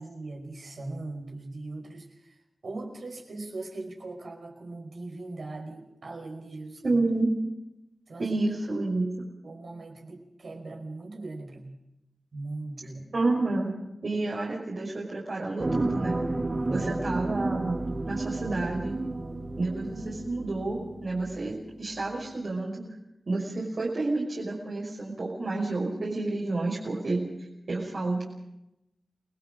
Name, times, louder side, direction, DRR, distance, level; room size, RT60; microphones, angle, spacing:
voice 1, 0.0-2.4 2.6-7.0 8.1-8.3 9.4-11.8 12.3-13.2 16.4-16.9, right 2 dB, 80° right, 1 dB, 5.2 m, -40 dB
voice 2, 6.8-7.3 8.2-9.1 13.1-13.7 14.0-16.2 16.7-18.9 19.6-22.8 23.3-27.2 27.7-28.2, right 2 dB, 60° right, -5 dB, 5.6 m, -29 dB
sound 1, 15.6-21.7 22.0-22.1, right 2 dB, 30° right, 1.5 m, -32 dB
29.0 x 20.0 x 5.2 m, 0.86 s
wide cardioid pair, 110°, 0 cm